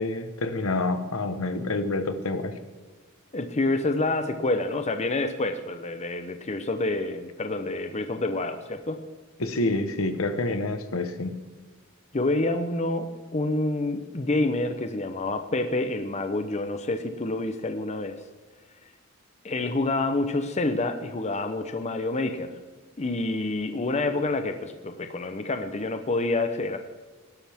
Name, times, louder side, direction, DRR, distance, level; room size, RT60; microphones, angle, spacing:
voice 1, 0.0-2.5 9.4-11.3, left 2 dB, 70° left, 9 dB, 1.2 m, -27 dB
voice 2, 3.3-9.0 12.1-18.2 19.4-22.5 23.0-26.8, left 2 dB, 35° left, 8 dB, 0.7 m, -28 dB
18.5 x 11.5 x 3.6 m, 1.4 s
head